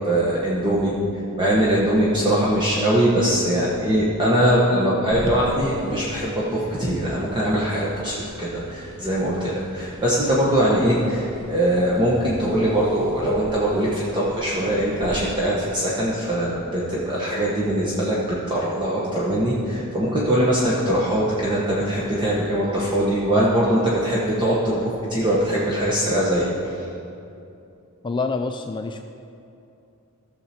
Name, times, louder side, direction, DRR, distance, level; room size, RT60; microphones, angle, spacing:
voice 1, 0.1-0.9 1.4-26.5, right 1 dB, 20° right, -6 dB, 1.2 m, -22 dB
sound 1, 5.1-15.1, right 1 dB, 55° right, 1.6 m, -40 dB
voice 2, 28.0-29.1, left 4 dB, 20° left, 5 dB, 0.3 m, -27 dB
14.5 x 6.6 x 4.3 m, 2.7 s
head